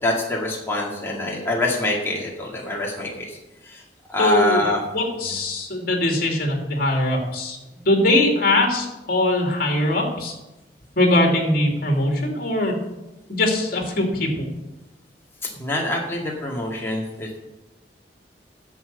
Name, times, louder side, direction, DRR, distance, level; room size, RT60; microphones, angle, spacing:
voice 1, 0.0-3.4 3.6-3.8 4.1-4.8 15.6-17.4, left 2 dB, 15° left, -3 dB, 2.2 m, -25 dB
voice 2, 4.2-4.6 4.9-10.4 11.0-12.8 13.3-14.5, left 1 dB, 55° left, 1 dB, 2.7 m, -21 dB
10.5 x 7.4 x 6.7 m, 1.0 s
head